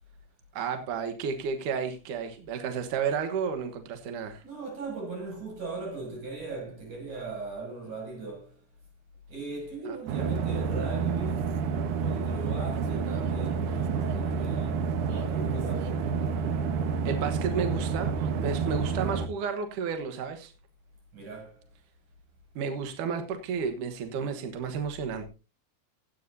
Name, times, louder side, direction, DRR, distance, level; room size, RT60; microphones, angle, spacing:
voice 1, 0.5-4.4 9.9-10.0 17.1-20.5 22.6-25.3, right 6 dB, 65° right, 2.1 m, -32 dB
voice 2, 4.4-8.6 9.3-11.5 11.9-16.2 21.1-21.6, right 3 dB, 45° right, 8.3 m, -38 dB
sound 1, 10.1-19.3, right 5 dB, 90° right, 1.7 m, -29 dB
17.0 x 12.0 x 2.7 m
omnidirectional pair, 5.2 m